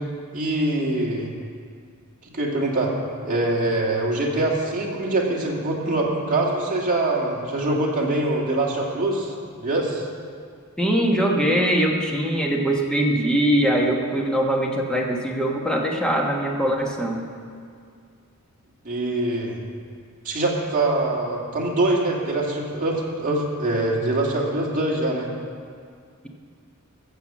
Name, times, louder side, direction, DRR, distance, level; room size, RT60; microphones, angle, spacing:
voice 1, 0.3-1.3 2.3-2.9 3.2-9.3 9.6-10.0 18.8-19.6 20.2-25.3, right 2 dB, 40° right, -2 dB, 2.3 m, -24 dB
voice 2, 10.8-17.2, right 1 dB, 5° left, 0 dB, 1.3 m, -22 dB
14.5 x 7.0 x 7.4 m, 2.2 s
head